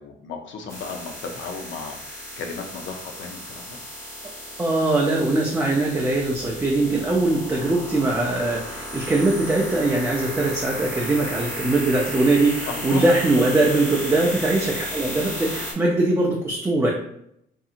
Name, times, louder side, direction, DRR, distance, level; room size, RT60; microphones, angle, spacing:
voice 1, 0.0-3.8 7.1-7.2 12.6-13.1, left 5 dB, 70° left, 4 dB, 0.6 m, -35 dB
sound 1, 0.7-15.7, equal, 15° left, 0.8 m, -34 dB
voice 2, 4.6-16.9, right 2 dB, 15° right, -2 dB, 0.4 m, -21 dB
2.7 x 2.6 x 2.4 m, 0.75 s
cardioid pair, 90°, 20 cm